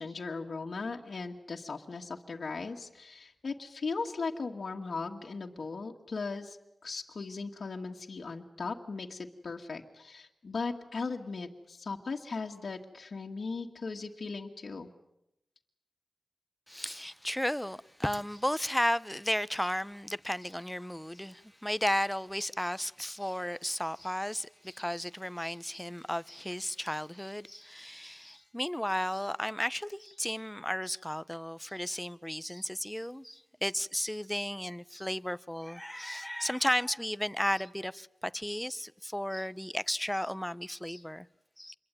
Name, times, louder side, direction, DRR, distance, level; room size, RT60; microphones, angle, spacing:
voice 1, 0.0-6.6 6.8-14.9, left 4 dB, 65° left, 2.1 m, -38 dB
voice 2, 16.7-41.3 41.6-41.7, equal, 5° left, 1.0 m, -34 dB
28.0 x 23.0 x 9.3 m
cardioid pair, 55°, 0 cm